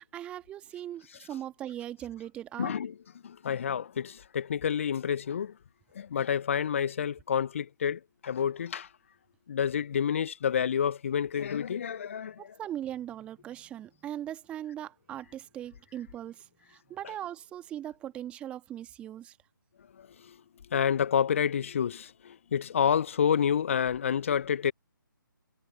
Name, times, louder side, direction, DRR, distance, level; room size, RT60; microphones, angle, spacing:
voice 1, 0.0-2.7 12.4-19.4, right 11 dB, 10° right, 1.8 m, -40 dB
voice 2, 2.6-2.9 3.2-5.5 5.9-8.9 9.5-12.5 20.0-20.3 20.7-24.7, left 8 dB, 35° left, 1.2 m, -29 dB
figure-of-eight pair, 145°, 11 cm